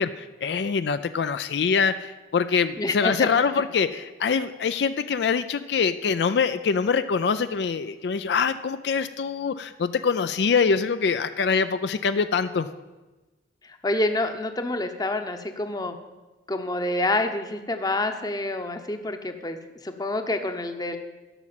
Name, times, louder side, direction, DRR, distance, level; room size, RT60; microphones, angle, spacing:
voice 1, 0.0-12.7, left 5 dB, 70° left, 11 dB, 0.4 m, -24 dB
voice 2, 2.8-3.3 13.6-16.0 16.5-19.6 19.8-21.0, left 2 dB, 20° left, 7 dB, 0.8 m, -27 dB
12.0 x 6.1 x 7.5 m, 1.2 s
head